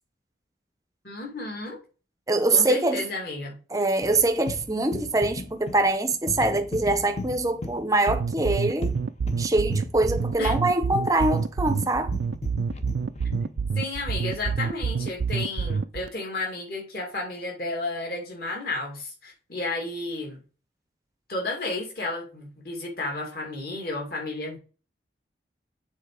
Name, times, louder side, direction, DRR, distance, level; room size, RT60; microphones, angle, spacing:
voice 1, 1.0-1.8 2.5-3.6 10.4-10.6 13.7-20.4 21.3-24.6, left 2 dB, 55° left, 2.5 m, -32 dB
voice 2, 2.3-3.0 3.7-8.9 9.4-12.1, right 2 dB, 20° right, 0.6 m, -24 dB
sound 1, 4.0-13.6, left 2 dB, 35° left, 0.6 m, -37 dB
sound 2, 8.1-16.1, right 5 dB, 70° right, 0.4 m, -27 dB
7.2 x 3.9 x 4.8 m
head